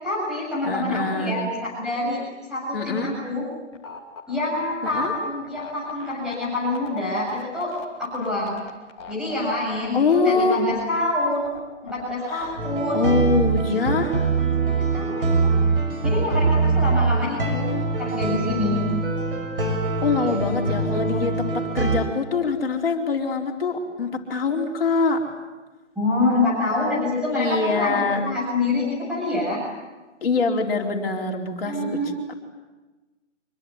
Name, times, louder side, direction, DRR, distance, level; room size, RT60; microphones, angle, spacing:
voice 1, 0.0-2.2 2.5-3.4 4.3-7.7 8.0-8.7 9.1-11.5 11.8-13.1 14.7-15.5 16.0-17.7 18.0-18.8 20.3-21.3 26.0-29.6 31.6-32.1, left 2 dB, ahead, -6 dB, 7.6 m, -26 dB
voice 2, 0.6-1.4 2.7-3.1 4.8-5.1 9.9-10.6 12.3-12.6 12.9-14.2 17.1-17.9 20.0-25.3 27.3-28.2 30.2-32.3, left 4 dB, 50° left, 1 dB, 4.5 m, -24 dB
sound 1, 3.7-12.6, left 7 dB, 20° left, 2.8 m, -39 dB
sound 2, 12.6-22.0, right 4 dB, 45° right, 6.3 m, -23 dB
26.0 x 23.0 x 9.7 m, 1.2 s
figure-of-eight pair, 160°, 37 cm